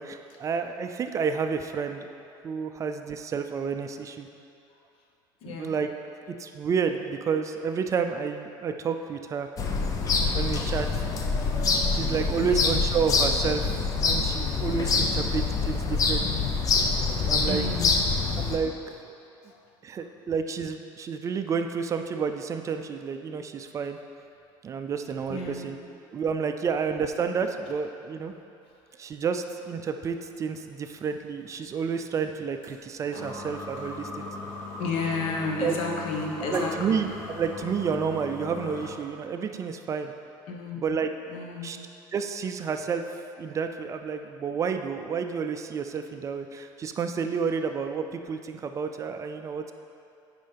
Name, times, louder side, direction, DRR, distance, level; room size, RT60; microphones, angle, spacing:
voice 1, 0.0-2.1 2.4-4.3 5.5-5.9 6.3-9.5 10.3-10.9 11.9-13.7 14.0-16.5 17.2-17.6 18.4-18.7 19.0-19.1 19.8-24.0 24.6-25.8 26.1-28.3 29.0-34.3 35.6-35.8 36.5-40.1 40.8-41.1 41.6-41.8 42.1-43.0 43.4-49.7, right 6 dB, 30° right, 7 dB, 0.4 m, -30 dB
voice 2, 5.4-5.8 12.4-12.8 14.5-14.6 15.0-15.3 17.5-18.1 19.4-19.6 25.3-25.7 34.8-37.0 40.5-40.9 41.3-41.7, left 3 dB, 65° left, 0 dB, 1.1 m, -32 dB
sound 1, 9.6-18.6, left 4 dB, 35° left, 0.7 m, -25 dB
sound 2, 30.1-39.1, left 2 dB, 80° left, 1.6 m, -40 dB
9.2 x 5.3 x 3.4 m, 2.7 s
cardioid pair, 125°, 10 cm